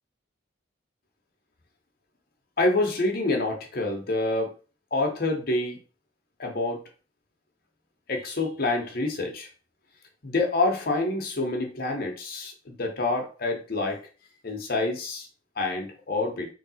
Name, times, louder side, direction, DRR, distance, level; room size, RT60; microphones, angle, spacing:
voice 1, 2.6-4.5 4.9-5.8 6.4-6.8 8.1-9.5 10.2-14.0 14.4-15.3 15.6-16.5, left 2 dB, 50° left, 2 dB, 0.9 m, -27 dB
3.3 x 2.7 x 4.2 m, 0.35 s
head